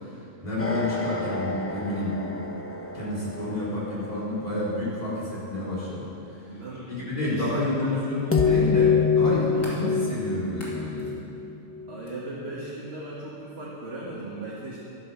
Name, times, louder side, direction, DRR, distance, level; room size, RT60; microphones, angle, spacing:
voice 1, 0.4-2.2 2.9-6.1 6.9-11.2, left 1 dB, 30° left, -8 dB, 4.3 m, -29 dB
sound 1, 0.6-4.9 8.3-12.2, left 5 dB, 15° left, 0.6 m, -27 dB
voice 2, 6.5-8.0 9.5-9.8 11.9-14.8, right 2 dB, 55° right, -6 dB, 2.1 m, -38 dB
sound 2, 8.9-9.9 10.5-11.2 12.0-12.2, left 1 dB, 85° left, 3.1 m, -45 dB
13.5 x 12.0 x 5.7 m, 2.7 s
omnidirectional pair, 1.3 m